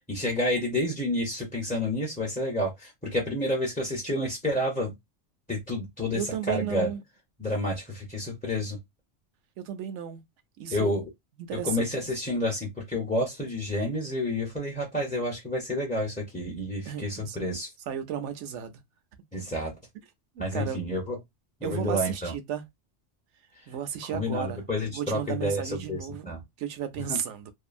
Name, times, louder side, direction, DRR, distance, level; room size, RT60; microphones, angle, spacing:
voice 1, 0.1-4.9 5.5-6.9 7.4-8.8 10.7-11.1 11.5-17.7 19.3-19.7 20.4-21.2 21.6-22.3 23.6-23.7 24.1-26.4 27.0-27.2, left 1 dB, 10° left, 0.5 m, -29 dB
voice 2, 6.1-7.0 9.6-10.2 10.6-10.9 11.4-11.9 16.9-17.4 17.9-18.8 20.4-20.8 21.6-22.6 23.7-24.6 24.9-26.3 26.6-27.5, right 9 dB, 75° right, 0.9 m, -34 dB
2.7 x 2.4 x 2.5 m
omnidirectional pair, 1.3 m